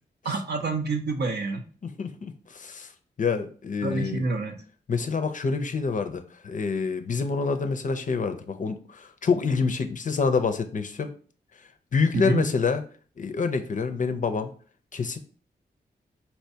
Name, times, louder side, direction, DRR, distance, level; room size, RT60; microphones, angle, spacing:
voice 1, 0.2-1.6 3.8-4.6 12.1-12.4, right 3 dB, 70° right, 5 dB, 0.6 m, -27 dB
voice 2, 1.8-2.9 3.2-4.3 4.9-11.1 11.9-12.8 13.2-14.5 14.9-15.2, left 5 dB, 45° left, 8 dB, 0.5 m, -27 dB
4.2 x 2.2 x 2.7 m, 0.42 s
cardioid pair, 45°, 18 cm